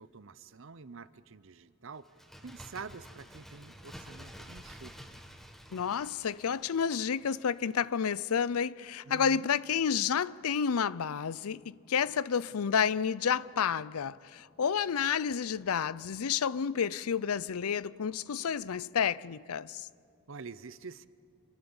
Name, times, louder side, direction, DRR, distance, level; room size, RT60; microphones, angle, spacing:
voice 1, 0.0-2.1 2.4-5.1 9.0-9.5 20.3-21.1, right 4 dB, 60° right, 0.7 m, -47 dB
Bird, 2.0-7.6 7.9-8.0, equal, ahead, 1.2 m, -50 dB
voice 2, 5.7-19.9, left 7 dB, 75° left, 0.5 m, -30 dB
27.0 x 23.0 x 7.1 m
head